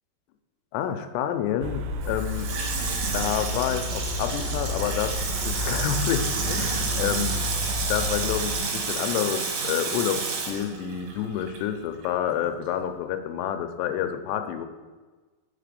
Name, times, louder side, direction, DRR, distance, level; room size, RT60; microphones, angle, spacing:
voice 1, 0.7-2.5 3.1-5.1 5.4-7.4 7.9-14.7, left 9 dB, 85° left, 8 dB, 2.7 m, -28 dB
sound 1, 1.6-8.6, left 2 dB, 90° right, 2.8 m, -31 dB
Water tap faucet / Sink (filling or washing), 2.0-11.7 12.0-12.1, right 5 dB, 70° right, 3.1 m, -30 dB
6.3 x 5.0 x 6.7 m, 1.3 s
omnidirectional pair, 5.0 m